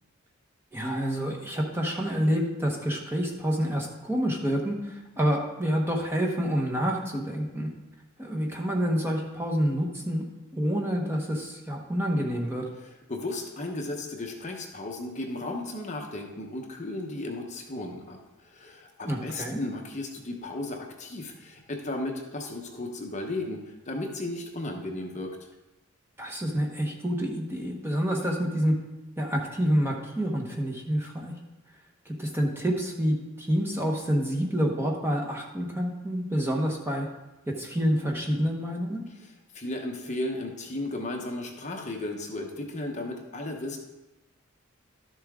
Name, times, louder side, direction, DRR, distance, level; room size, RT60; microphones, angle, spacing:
voice 1, 0.7-7.7 8.2-10.2 10.5-12.7 19.1-19.6 26.2-28.8 29.2-31.3 32.0-37.1 37.5-39.0, equal, 10° right, 0 dB, 1.1 m, -28 dB
voice 2, 13.1-25.4 39.1-43.8, left 2 dB, 35° left, 1 dB, 1.0 m, -35 dB
12.0 x 7.1 x 3.6 m, 1.0 s
head